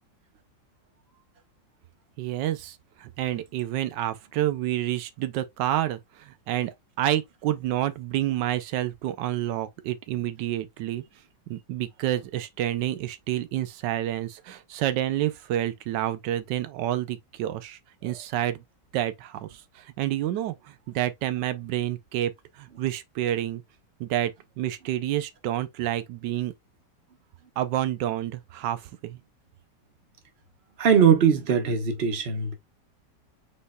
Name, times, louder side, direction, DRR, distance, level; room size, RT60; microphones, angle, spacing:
voice 1, 2.2-11.0 11.5-18.6 18.9-23.6 24.0-24.3 24.6-26.5 27.6-29.2, right 12 dB, 85° right, 1.3 m, -29 dB
voice 2, 30.8-32.5, right 7 dB, 40° right, 1.2 m, -20 dB
5.4 x 4.2 x 2.2 m
omnidirectional pair, 1.9 m